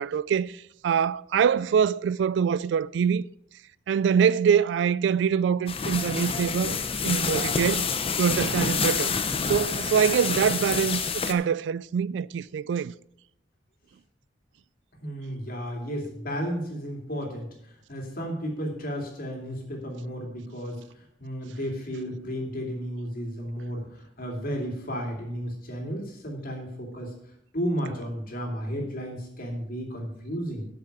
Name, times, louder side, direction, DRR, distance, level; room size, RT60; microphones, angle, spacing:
voice 1, 0.0-3.2 3.9-6.8 7.0-7.9 8.2-9.2 9.5-12.9, right 7 dB, 70° right, 0.3 m, -24 dB
sound 1, 5.7-11.3, left 5 dB, 30° left, 0.7 m, -28 dB
voice 2, 15.0-20.8 21.2-27.1 27.5-30.7, equal, 55° left, 2.7 m, -33 dB
8.2 x 6.8 x 6.8 m
head